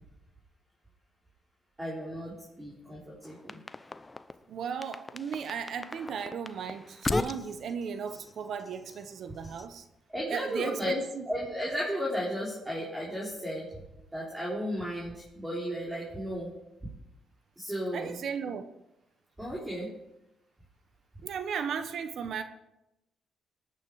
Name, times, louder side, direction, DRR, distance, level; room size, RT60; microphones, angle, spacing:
voice 1, 1.8-3.6 10.1-11.0 11.3-13.6 14.1-16.5 17.6-18.2 19.4-19.9, equal, 10° right, -5 dB, 4.1 m, -34 dB
sound 1, 3.2-4.4 4.8-9.7, left 2 dB, 20° left, 0.7 m, -38 dB
voice 2, 4.5-9.8 10.3-11.3 17.9-18.6 21.2-22.4, right 7 dB, 65° right, 9 dB, 1.0 m, -36 dB
18.5 x 9.1 x 4.8 m, 0.90 s
cardioid pair, 90°, 0 cm